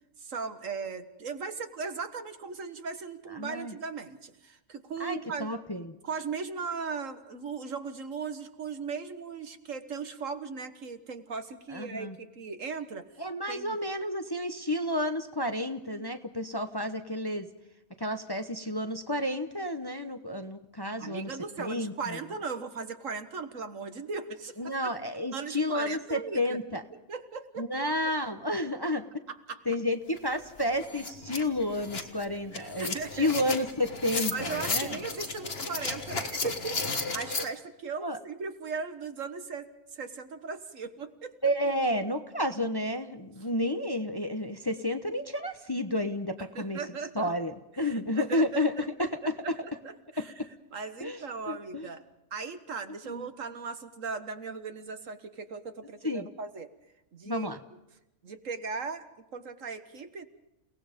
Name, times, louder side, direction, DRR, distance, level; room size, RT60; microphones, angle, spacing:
voice 1, 0.2-5.5 6.0-13.1 13.5-13.8 21.0-24.7 25.3-26.6 27.1-27.9 29.3-29.6 32.5-33.3 34.3-41.3 46.5-47.3 47.8-49.1 49.4-50.3 50.7-52.0 52.3-56.7 57.1-57.5 58.2-59.1 59.3-60.2, right 5 dB, 65° right, 9 dB, 1.8 m, -38 dB
voice 2, 3.3-3.7 5.0-5.9 11.7-12.1 13.2-17.5 18.0-22.2 24.6-26.8 27.6-29.0 29.7-35.0 38.0-38.2 41.4-46.8 47.1-48.7 49.0-49.6 50.2-50.5 51.0-51.2 51.5-51.9 53.0-53.3 56.0-56.3 57.2-57.6, left 1 dB, 20° left, 8 dB, 1.0 m, -31 dB
sound 1, 30.2-30.3 30.6-37.5, left 3 dB, 45° left, 1.9 m, -34 dB
29.5 x 18.0 x 5.2 m, 0.93 s
omnidirectional pair, 1.4 m